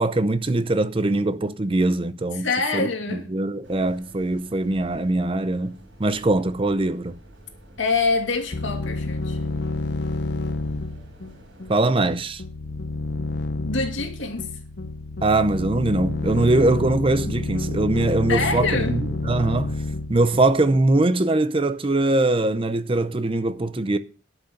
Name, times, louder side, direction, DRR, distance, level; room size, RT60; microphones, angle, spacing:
voice 1, 0.0-7.2 11.7-12.4 15.2-19.8 20.1-24.0, right 2 dB, 30° right, 0.6 m, -22 dB
voice 2, 2.4-3.3 7.8-9.4 13.6-14.5 18.3-18.9, left 4 dB, 75° left, 2.4 m, -25 dB
sound 1, 3.6-12.2, right 1 dB, 85° right, 4.1 m, -48 dB
sound 2, 8.5-21.0, left 2 dB, 60° left, 0.7 m, -29 dB
11.5 x 6.1 x 6.4 m
head